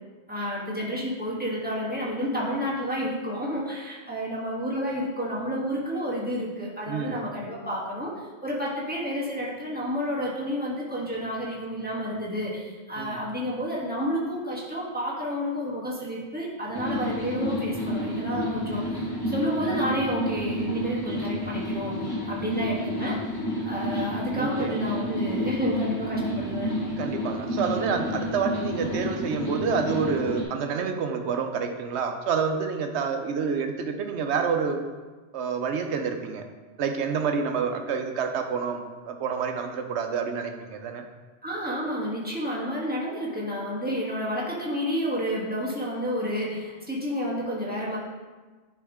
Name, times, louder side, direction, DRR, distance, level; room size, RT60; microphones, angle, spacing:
voice 1, 0.3-18.8 19.3-23.3 23.6-26.7 41.4-48.0, equal, 10° right, -6 dB, 1.3 m, -30 dB
voice 2, 6.9-7.2 13.0-13.3 24.3-24.8 27.0-34.8 35.3-36.5 36.8-41.0, right 6 dB, 85° right, 5 dB, 1.0 m, -28 dB
sound 1, 16.7-30.4, equal, 20° left, 1.0 m, -30 dB
10.0 x 3.5 x 3.6 m, 1.3 s
omnidirectional pair, 1.1 m